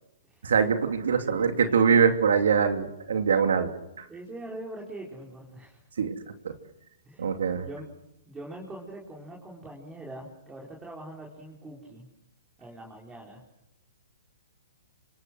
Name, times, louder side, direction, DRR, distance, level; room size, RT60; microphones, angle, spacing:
voice 1, 0.4-3.7 4.0-4.1 6.0-6.1 6.4-6.5 7.2-7.7, right 6 dB, 80° right, 6 dB, 2.8 m, -23 dB
voice 2, 1.2-1.8 4.1-5.8 7.0-7.9 8.3-12.1 12.6-13.4, right 1 dB, 10° right, -2 dB, 4.6 m, -43 dB
28.0 x 26.0 x 6.5 m, 0.88 s
hypercardioid pair, 145°, 0 cm